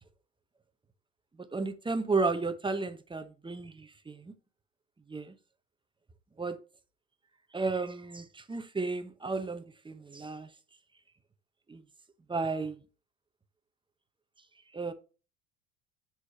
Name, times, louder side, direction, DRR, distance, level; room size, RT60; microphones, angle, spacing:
voice 1, 1.4-4.3 5.1-5.3 6.4-6.6 7.5-10.5 11.7-11.8 12.3-12.8 14.7-14.9, right 3 dB, 10° right, 0.8 m, -33 dB
9.6 x 4.9 x 2.8 m
hypercardioid pair, 85°, 42 cm